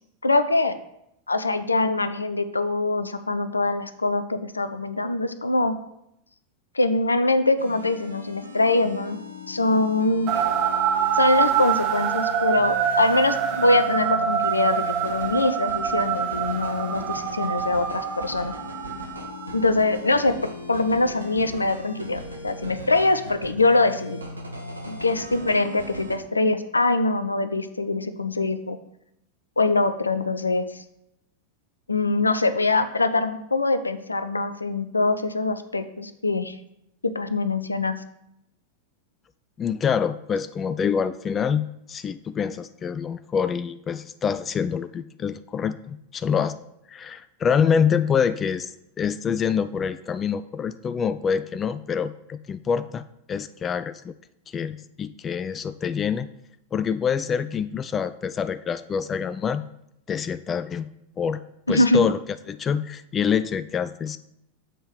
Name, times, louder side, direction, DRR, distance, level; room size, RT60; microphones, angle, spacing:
voice 1, 0.2-0.7 1.3-5.7 6.7-9.2 9.5-10.4 11.1-18.5 19.5-20.3 20.7-24.2 24.9-28.8 29.6-30.8 31.9-36.6 37.0-37.9 61.7-62.0, left 2 dB, 80° left, 11 dB, 0.5 m, -23 dB
sound 1, 7.6-26.2, left 1 dB, 80° right, 1.0 m, -39 dB
sound 2, 10.3-19.7, right 8 dB, 35° right, 0.7 m, -25 dB
voice 2, 39.6-46.6 46.9-54.1 54.5-56.3 56.7-59.6 60.1-60.9 61.2-61.4 61.7-62.2 62.5-64.2, left 7 dB, 25° left, 12 dB, 0.3 m, -26 dB
7.4 x 4.4 x 5.0 m, 0.79 s
figure-of-eight pair, 90°, 0 cm